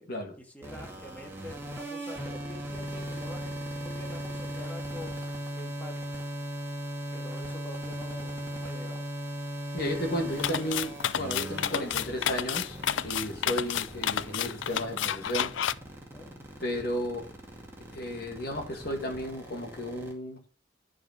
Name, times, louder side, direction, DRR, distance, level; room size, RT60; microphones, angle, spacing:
voice 1, 0.0-5.2 5.5-6.0 7.1-9.1 16.1-16.5, left 1 dB, 10° left, 1.8 m, -46 dB
sound 1, 0.6-20.1, equal, 15° right, 2.2 m, -38 dB
voice 2, 9.7-12.8 13.0-15.5 16.6-17.3 17.9-20.4, equal, 55° left, 2.5 m, -33 dB
sound 2, 10.4-15.7, left 10 dB, 80° left, 0.4 m, -30 dB
10.5 x 5.0 x 6.2 m
head